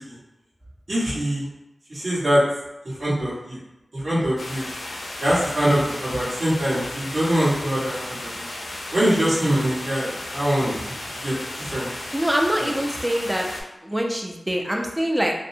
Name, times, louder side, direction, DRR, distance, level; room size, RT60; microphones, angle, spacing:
voice 1, 0.9-1.5 1.9-2.4 2.8-3.6 3.9-4.7 5.2-8.5 8.9-10.7 11.1-11.9 12.6-12.7, equal, 65° right, -11 dB, 1.3 m, -23 dB
sound 1, 4.4-13.6, left 1 dB, 90° left, 0.4 m, -34 dB
voice 2, 12.1-13.5 13.8-15.3, equal, 15° right, 1 dB, 0.4 m, -24 dB
2.6 x 2.0 x 2.6 m, 1.0 s
wide cardioid pair, 75°, 0 cm